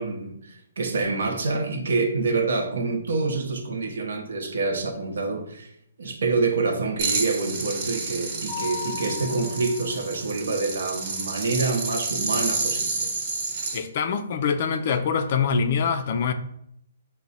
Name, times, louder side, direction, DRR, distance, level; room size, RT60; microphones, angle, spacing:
voice 1, 0.0-5.7 6.0-13.1, right 3 dB, 75° right, 4 dB, 0.7 m, -27 dB
sound 1, 7.0-13.8, right 3 dB, 35° right, 0.9 m, -30 dB
Mallet percussion, 8.5-10.3, left 10 dB, 5° left, 0.8 m, -36 dB
voice 2, 13.7-16.3, left 6 dB, 40° left, 9 dB, 0.3 m, -24 dB
4.6 x 2.1 x 4.0 m, 0.73 s
hypercardioid pair, 165°, 0 cm